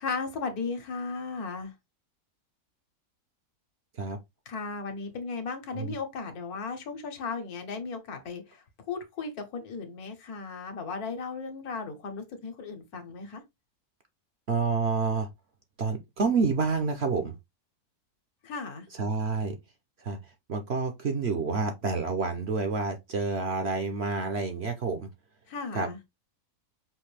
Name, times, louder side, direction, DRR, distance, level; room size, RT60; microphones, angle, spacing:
voice 1, 0.0-1.7 4.5-13.4 18.4-18.9 25.5-26.0, left 4 dB, 75° left, 1.5 m, -36 dB
voice 2, 14.5-15.3 15.8-17.3 18.9-19.6 20.0-20.2 20.5-25.1 25.7-25.9, right 4 dB, 55° right, 0.8 m, -28 dB
5.7 x 2.6 x 3.2 m
omnidirectional pair, 1.6 m